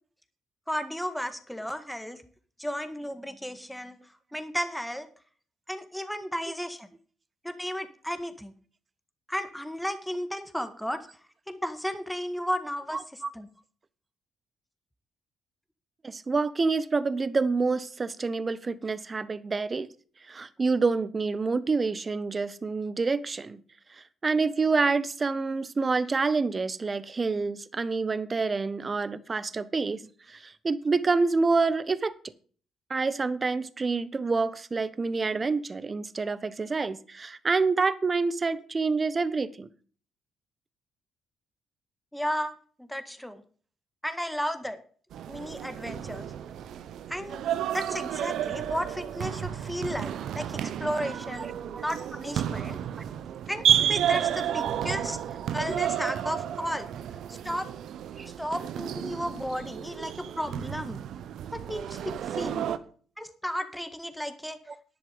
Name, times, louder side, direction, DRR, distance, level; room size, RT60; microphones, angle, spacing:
voice 1, 0.7-2.2 2.6-4.0 4.3-5.1 5.7-6.9 7.4-8.5 9.3-11.1 11.5-13.0 13.3-13.5 42.1-42.5 42.8-43.4 44.0-44.8 45.3-46.3 47.1-47.4 47.7-51.5 51.8-52.8 53.5-55.2 55.5-56.9 57.4-57.7 58.4-61.0 61.5-62.7 63.2-64.6, equal, 5° left, 9 dB, 1.8 m, -33 dB
voice 2, 16.0-19.9 20.3-23.6 24.0-30.0 30.3-32.1 32.9-39.7 51.4-51.8 53.0-53.1 58.2-58.3, right 4 dB, 35° right, 16 dB, 1.1 m, -27 dB
sound 1, 45.1-62.8, right 10 dB, 70° right, 1.0 m, -31 dB
11.0 x 10.5 x 5.2 m, 0.43 s
hypercardioid pair, 55°, 0 cm